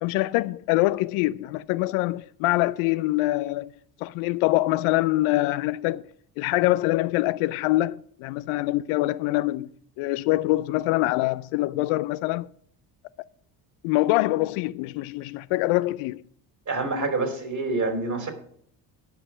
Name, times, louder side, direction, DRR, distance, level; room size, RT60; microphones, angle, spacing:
voice 1, 0.0-3.7 4.0-6.0 6.4-9.7 10.0-12.5 13.8-16.2, left 18 dB, 80° left, 0.6 m, -24 dB
voice 2, 16.7-18.3, right 3 dB, 35° right, 3.2 m, -27 dB
11.0 x 5.3 x 7.3 m
supercardioid pair, 65°, 50 cm